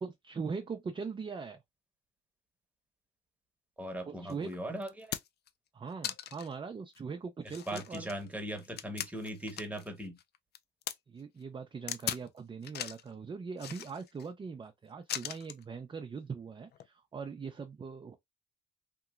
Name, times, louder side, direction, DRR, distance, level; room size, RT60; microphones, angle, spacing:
voice 1, 0.0-1.6 4.1-4.6 5.7-8.1 11.1-18.2, right 5 dB, 25° right, 0.4 m, -41 dB
voice 2, 3.8-5.2 7.4-10.2, right 1 dB, 5° right, 1.0 m, -39 dB
sound 1, 4.3-4.4 4.8-5.5 6.0-6.5 6.9-7.0 7.5-9.9 10.2-10.9 11.9-12.3 12.6-13.1 13.6-14.3 15.1-15.6 16.7-16.9, left 10 dB, 55° left, 0.4 m, -39 dB
2.9 x 2.8 x 2.4 m
cardioid pair, 90°, 20 cm